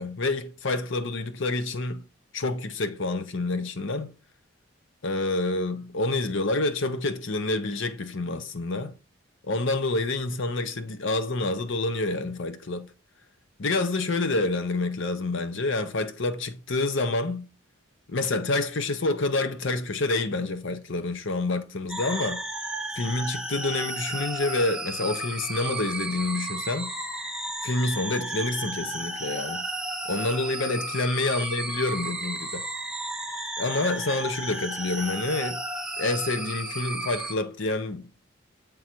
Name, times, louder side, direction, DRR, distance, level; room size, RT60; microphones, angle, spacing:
voice 1, 0.0-2.0 2.3-4.1 5.0-9.0 9.4-12.9 13.6-17.5 18.1-22.4 23.0-26.9 27.6-29.7 30.1-32.6 33.6-35.6 36.0-38.1, left 2 dB, 65° left, 0.7 m, -28 dB
sound 1, 21.9-37.3, right 2 dB, 5° right, 0.8 m, -33 dB
8.4 x 3.8 x 4.4 m
head